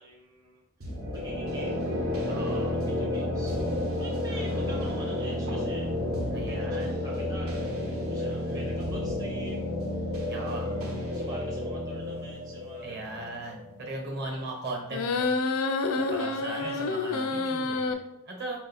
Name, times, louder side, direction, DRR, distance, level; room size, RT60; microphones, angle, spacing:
voice 1, 0.0-3.6 4.0-13.5 14.3-14.5 16.1-16.9, right 1 dB, 15° right, -3 dB, 0.5 m, -48 dB
sound 1, 0.8-14.5, left 1 dB, 75° right, 0.9 m, -31 dB
voice 2, 2.2-2.7 6.3-7.0 8.2-8.8 10.3-10.7 12.8-15.3 16.0-18.6, right 2 dB, 50° right, 1 dB, 1.0 m, -38 dB
sound 2, 14.9-17.9, left 3 dB, 85° left, 0.4 m, -28 dB
3.9 x 2.6 x 4.0 m, 0.87 s
head